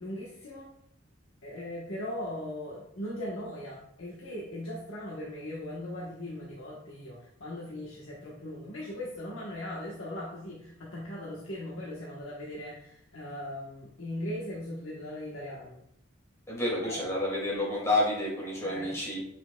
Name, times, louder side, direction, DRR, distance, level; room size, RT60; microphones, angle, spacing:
voice 1, 0.0-0.7 1.4-15.7 16.9-17.0 18.6-18.9, left 1 dB, 85° left, -5 dB, 1.2 m, -39 dB
voice 2, 16.5-19.2, left 1 dB, 15° left, -6 dB, 2.3 m, -29 dB
7.9 x 5.6 x 2.3 m, 0.74 s
head